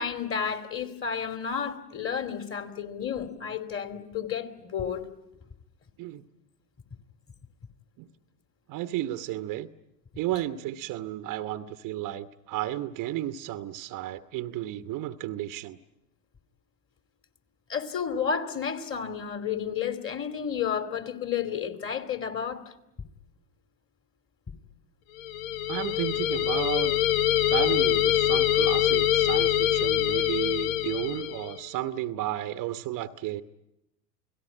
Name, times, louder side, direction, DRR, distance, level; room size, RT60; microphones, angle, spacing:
voice 1, 0.0-5.0 17.7-22.6, left 7 dB, 25° left, 9 dB, 2.8 m, -31 dB
voice 2, 8.7-9.7 10.2-15.8 25.7-26.9 27.4-33.4, right 13 dB, 40° right, 11 dB, 1.1 m, -33 dB
sound 1, 25.2-31.6, left 11 dB, 50° left, 1.0 m, -24 dB
29.5 x 18.0 x 9.9 m, 0.89 s
hypercardioid pair, 100°, 49 cm